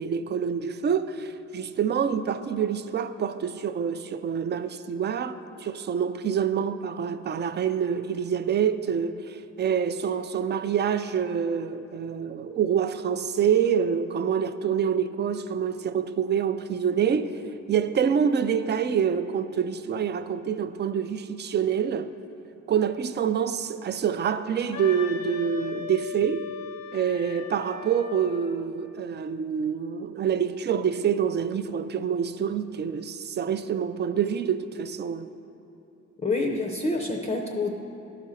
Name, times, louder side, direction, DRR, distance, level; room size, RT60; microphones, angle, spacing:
voice 1, 0.0-17.3 17.7-22.1 22.7-26.5 26.9-35.3, right 7 dB, 35° right, 0.4 m, -26 dB
Wind instrument woodwind instrument, 24.7-28.6, left 7 dB, 90° left, 0.8 m, -38 dB
voice 2, 36.2-37.7, left 2 dB, 20° left, 0.5 m, -27 dB
11.5 x 5.0 x 4.1 m
cardioid pair, 90°, 30 cm